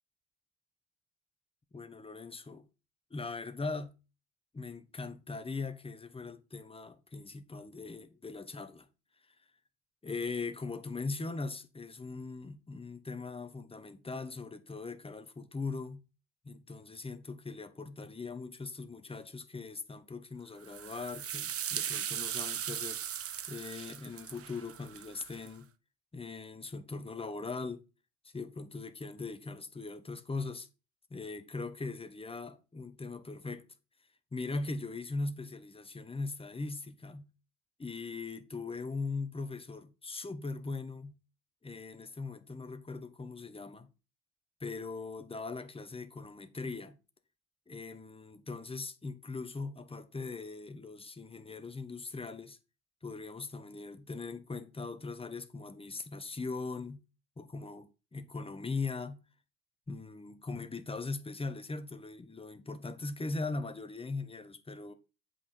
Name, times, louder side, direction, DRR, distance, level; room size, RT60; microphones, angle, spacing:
voice 1, 1.7-2.6 3.1-4.0 4.5-8.9 10.0-16.0 16.4-23.0 23.5-25.7 26.1-27.8 28.3-30.7 31.1-33.6 34.3-37.3 37.8-41.2 41.6-43.9 44.6-47.0 47.7-52.6 53.0-57.0 57.4-59.2 59.9-64.9, left 3 dB, 15° left, 1.3 m, -40 dB
sound 1, 20.6-25.5, right 9 dB, 35° right, 0.9 m, -38 dB
7.9 x 6.1 x 4.5 m
hypercardioid pair, 60°, 42 cm